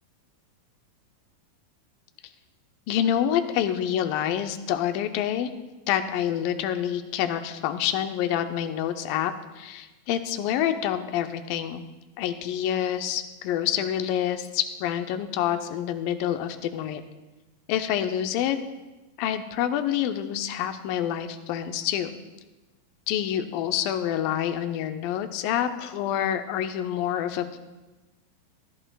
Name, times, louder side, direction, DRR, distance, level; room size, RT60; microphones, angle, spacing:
voice 1, 2.9-5.5 5.9-11.8 12.2-17.0 17.7-18.6 19.2-22.1 23.1-27.6, left 10 dB, 80° left, 8 dB, 2.2 m, -27 dB
16.5 x 11.0 x 2.3 m, 1.1 s
omnidirectional pair, 4.2 m